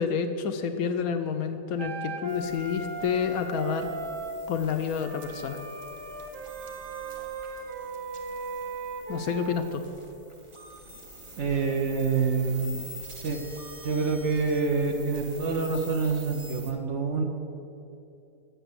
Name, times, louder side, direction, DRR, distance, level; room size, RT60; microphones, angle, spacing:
voice 1, 0.0-3.9 4.5-5.6 9.1-9.8, left 6 dB, 70° left, 7 dB, 1.0 m, -29 dB
Wind instrument woodwind instrument, 1.8-4.4 5.0-9.6, right 4 dB, 85° right, 1.5 m, -37 dB
sound 1, 2.3-16.7, right 1 dB, 30° right, 0.6 m, -46 dB
voice 2, 11.4-12.8 13.2-13.4 13.8-17.2, right 4 dB, 60° right, 3 dB, 0.8 m, -26 dB
8.0 x 6.3 x 7.9 m, 2.8 s
omnidirectional pair, 1.7 m